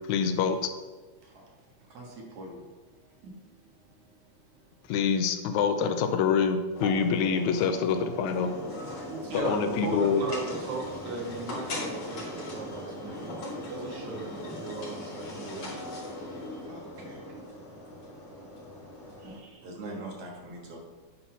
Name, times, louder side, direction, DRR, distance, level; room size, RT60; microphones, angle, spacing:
voice 1, 0.1-0.7 4.9-8.5 9.3-10.2, left 6 dB, 85° left, 2.0 m, -26 dB
voice 2, 1.2-1.9 2.9-4.7 9.0-16.2 17.2-19.7, right 3 dB, 80° right, 2.9 m, -39 dB
voice 3, 1.9-2.7 16.6-17.2 19.2-20.8, right 1 dB, 55° right, 2.2 m, -43 dB
sound 1, 6.8-19.4, left 1 dB, 45° left, 1.8 m, -39 dB
9.2 x 4.1 x 5.6 m
omnidirectional pair, 3.4 m